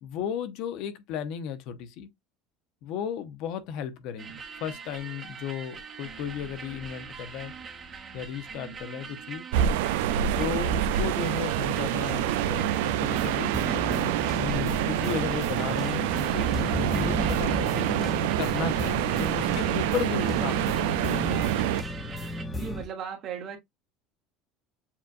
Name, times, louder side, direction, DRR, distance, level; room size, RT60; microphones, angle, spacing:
voice 1, 0.0-2.1 2.8-7.5 8.1-9.5 10.4-13.6 14.4-21.2, left 9 dB, 60° left, 0.8 m, -35 dB
sound 1, 4.2-22.4, right 6 dB, 30° right, 1.2 m, -43 dB
sound 2, 9.5-21.8, right 11 dB, 90° right, 0.4 m, -27 dB
sound 3, 12.9-22.9, left 1 dB, 15° left, 0.7 m, -34 dB
voice 2, 22.5-23.6, right 7 dB, 45° right, 1.4 m, -37 dB
7.2 x 2.5 x 2.5 m
cardioid pair, 140°, 0 cm